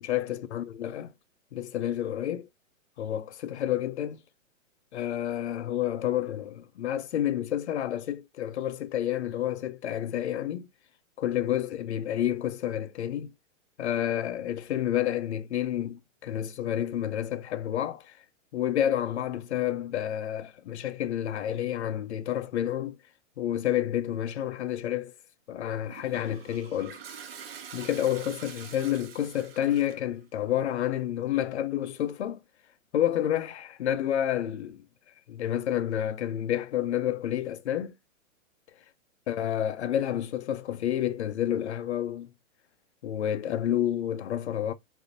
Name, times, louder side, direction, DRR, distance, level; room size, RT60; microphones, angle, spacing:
voice 1, 0.0-1.1 1.5-2.5 3.0-4.2 4.9-10.7 11.2-13.3 13.8-18.2 18.5-23.0 23.4-25.1 25.5-27.0 27.7-32.4 32.9-34.8 35.3-37.9 39.3-42.3 43.0-44.7, left 11 dB, 55° left, 0.5 m, -29 dB
Toilet flush, 25.8-30.1, right 7 dB, 50° right, 0.5 m, -45 dB
3.4 x 2.5 x 2.6 m
hypercardioid pair, 175°, 40 cm